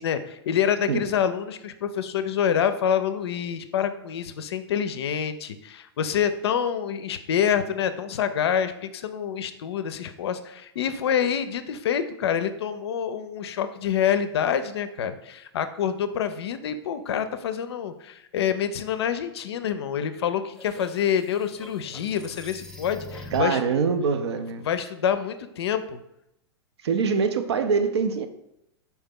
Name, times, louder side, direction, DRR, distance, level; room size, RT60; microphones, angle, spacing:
voice 1, 0.0-23.6 24.6-26.0, left 8 dB, 70° left, 11 dB, 0.4 m, -27 dB
sound 1, 20.2-23.7, left 1 dB, 5° left, 0.4 m, -43 dB
voice 2, 23.3-24.6 26.8-28.3, right 5 dB, 75° right, 10 dB, 0.5 m, -24 dB
4.3 x 2.8 x 3.6 m, 0.83 s
hypercardioid pair, 105°, 14 cm